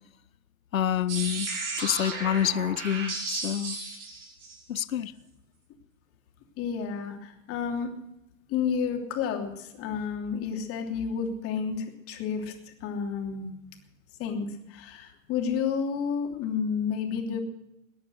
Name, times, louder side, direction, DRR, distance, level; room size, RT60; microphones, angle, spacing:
voice 1, 0.7-1.5 1.8-3.8 4.7-5.1, left 10 dB, 75° left, 0.8 m, -27 dB
sound 1, 1.1-4.8, right 3 dB, 60° right, 4.8 m, -34 dB
voice 2, 6.6-7.9 8.5-12.5 12.8-13.5 14.2-17.4, left 6 dB, 35° left, 3.1 m, -31 dB
21.0 x 10.5 x 6.5 m
figure-of-eight pair, 100°, 41 cm